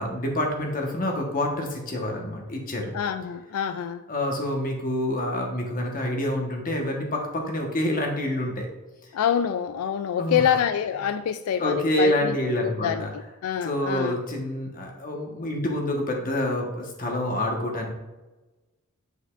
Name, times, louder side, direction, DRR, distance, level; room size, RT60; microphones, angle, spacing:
voice 1, 0.0-2.9 4.1-8.7 10.2-10.4 11.6-13.1 13.6-17.9, left 1 dB, 40° left, 1.3 m, -27 dB
voice 2, 2.9-4.0 9.1-14.2, left 8 dB, 85° left, 0.3 m, -26 dB
8.6 x 5.1 x 2.5 m
head